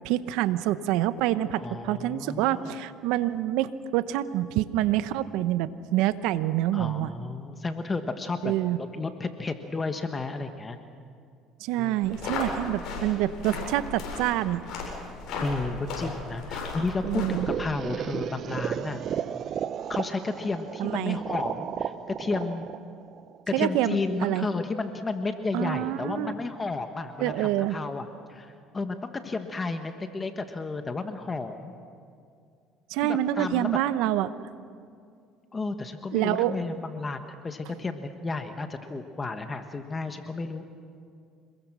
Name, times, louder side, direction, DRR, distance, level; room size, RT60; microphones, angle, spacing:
voice 1, 0.0-7.1 8.4-8.8 11.6-14.6 17.0-17.5 20.8-21.2 23.5-24.5 25.5-26.3 27.2-27.8 32.9-34.3 36.1-36.5, right 13 dB, 80° right, 14 dB, 0.8 m, -26 dB
voice 2, 1.6-2.7 6.7-8.5 8.8-10.8 11.8-12.0 15.4-19.0 19.9-22.6 23.5-31.7 33.0-33.8 35.5-40.6, left 3 dB, 25° left, 7 dB, 1.4 m, -32 dB
sound 1, 12.0-17.6, left 3 dB, 60° left, 7.8 m, -36 dB
sound 2, 17.0-23.9, right 9 dB, 50° right, 0.7 m, -34 dB
27.0 x 21.5 x 6.2 m, 2.3 s
supercardioid pair, 95°, 0 cm